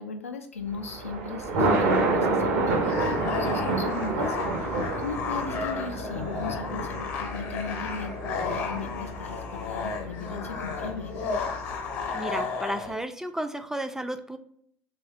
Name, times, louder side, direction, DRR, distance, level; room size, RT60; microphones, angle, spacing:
voice 1, 0.0-4.4 5.0-11.1, left 5 dB, 85° left, 6 dB, 0.4 m, -37 dB
Thunder, 0.7-12.0, right 2 dB, 65° right, 0.7 m, -29 dB
sound 1, 2.8-13.0, left 5 dB, 55° left, 0.8 m, -33 dB
voice 2, 12.1-14.4, right 1 dB, 5° right, 8 dB, 0.3 m, -33 dB
3.2 x 2.3 x 2.6 m, 0.66 s
figure-of-eight pair, 65°, 7 cm